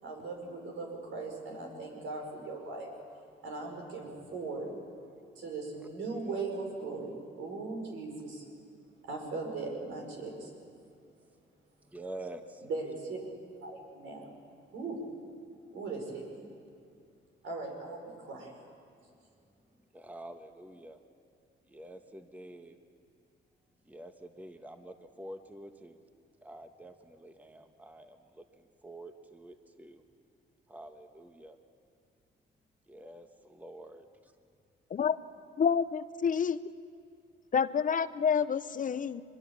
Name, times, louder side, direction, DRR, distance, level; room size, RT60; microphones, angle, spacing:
voice 1, 0.0-2.9 3.4-4.8 5.4-8.4 9.1-10.5 12.7-13.3 13.6-14.3 14.7-15.0 15.7-16.4 17.4-18.5, right 3 dB, 80° right, 1 dB, 5.3 m, -39 dB
voice 2, 11.8-12.7 15.6-15.8 19.9-21.0 21.7-22.8 23.8-26.0 26.4-30.0 30.7-31.6 32.9-34.3, right 1 dB, 10° right, 6 dB, 1.2 m, -48 dB
voice 3, 35.6-36.7 37.5-39.2, left 7 dB, 40° left, 14 dB, 0.6 m, -28 dB
23.5 x 21.5 x 7.3 m, 2.3 s
cardioid pair, 90°, 20 cm